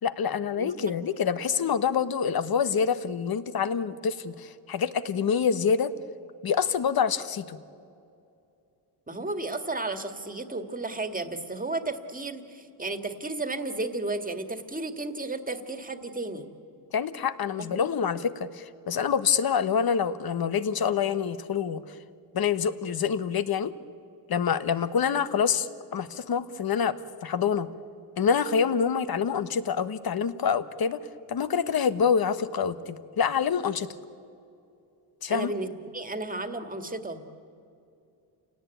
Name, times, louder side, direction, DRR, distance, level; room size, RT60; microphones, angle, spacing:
voice 1, 0.0-5.9 6.4-7.6 16.9-21.8 22.3-23.7 24.3-26.9 27.2-27.7 28.2-31.0 31.3-33.9 35.2-35.5, left 7 dB, 50° left, 12 dB, 1.2 m, -26 dB
voice 2, 0.6-0.9 9.1-16.5 17.6-17.9 35.3-37.2, right 2 dB, 20° right, 7 dB, 2.0 m, -33 dB
29.0 x 18.0 x 9.2 m, 2.6 s
cardioid pair, 95°, 46 cm